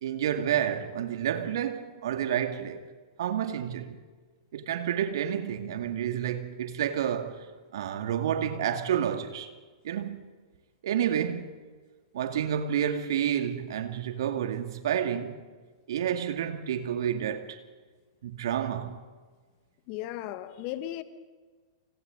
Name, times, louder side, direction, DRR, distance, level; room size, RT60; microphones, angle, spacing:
voice 1, 0.0-2.8 3.2-4.0 4.5-7.5 7.7-9.5 9.8-10.3 10.8-11.6 12.1-15.4 15.9-17.6 18.2-19.0, right 9 dB, 60° right, 2.0 m, -29 dB
voice 2, 19.9-21.0, left 13 dB, 40° left, 1.6 m, -36 dB
29.0 x 29.0 x 3.9 m
figure-of-eight pair, 105°, 3 cm